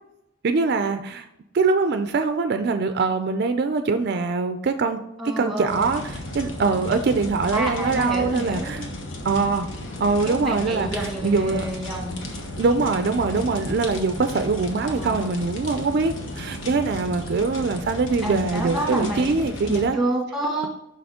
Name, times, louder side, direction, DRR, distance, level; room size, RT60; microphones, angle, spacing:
voice 1, 0.4-1.3 1.5-5.0 5.4-8.8 9.2-9.7 10.0-11.7 12.6-20.0, right 4 dB, 55° right, 8 dB, 0.4 m, -23 dB
voice 2, 5.2-5.9 7.5-8.8 10.2-12.2 14.9-15.3 18.2-19.4 19.7-20.7, right 1 dB, ahead, -1 dB, 1.5 m, -29 dB
sound 1, 5.7-19.9, left 1 dB, 75° left, 1.1 m, -34 dB
6.0 x 5.7 x 3.6 m, 0.82 s
head